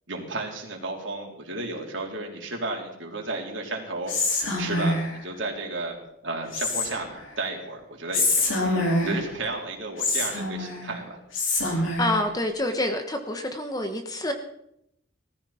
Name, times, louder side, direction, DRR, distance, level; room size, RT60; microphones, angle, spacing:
voice 1, 0.1-4.1 4.5-6.0 6.2-11.2, right 2 dB, 65° right, -1 dB, 3.7 m, -33 dB
Whispering, 4.1-5.2 6.5-7.2 8.1-9.3 10.0-10.9 11.3-12.2, left 2 dB, 75° left, 4.6 m, -25 dB
voice 2, 12.0-14.3, left 1 dB, 20° left, 6 dB, 1.2 m, -27 dB
19.5 x 14.5 x 4.4 m, 0.78 s
head